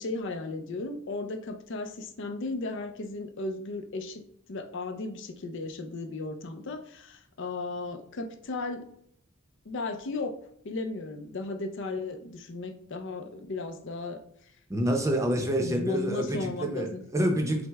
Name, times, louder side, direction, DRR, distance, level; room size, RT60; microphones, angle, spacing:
voice 1, 0.0-4.2 4.5-8.9 9.7-10.3 10.6-14.2 14.8-15.0 15.6-17.0, left 3 dB, 60° left, 7 dB, 0.6 m, -35 dB
voice 2, 14.7-17.7, equal, 15° right, 2 dB, 0.7 m, -27 dB
5.9 x 2.1 x 3.4 m, 0.71 s
head